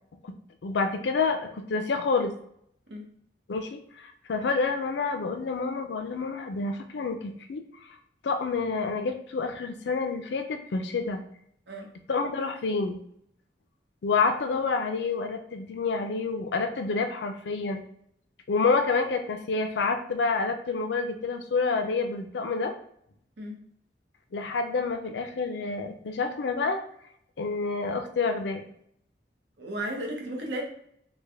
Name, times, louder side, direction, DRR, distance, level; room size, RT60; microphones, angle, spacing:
voice 1, 0.2-2.3 3.5-8.0 8.2-11.2 12.1-13.0 14.0-17.8 18.5-22.7 24.3-26.8 27.4-28.6, left 4 dB, 75° left, 7 dB, 0.4 m, -28 dB
voice 2, 29.6-30.6, right 1 dB, 80° right, 0 dB, 0.8 m, -34 dB
3.3 x 2.2 x 3.4 m, 0.68 s
head